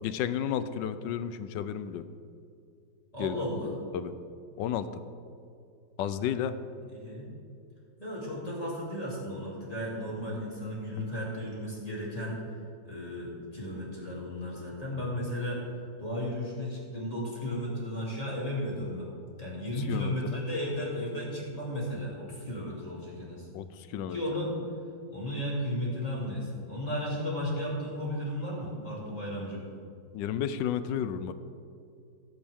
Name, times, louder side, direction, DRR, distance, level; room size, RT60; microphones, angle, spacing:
voice 1, 0.0-2.0 3.2-3.4 3.9-4.1 4.6-4.9 6.0-6.5 19.9-20.4 23.5-24.2 30.1-31.3, left 9 dB, 75° left, 12 dB, 1.2 m, -32 dB
voice 2, 3.1-3.7 6.9-7.3 8.0-12.4 12.8-15.6 16.0-19.1 19.4-23.5 24.1-24.5 25.1-29.7, left 1 dB, 20° left, -7 dB, 3.1 m, -34 dB
16.0 x 8.4 x 3.6 m, 2.4 s
omnidirectional pair, 2.0 m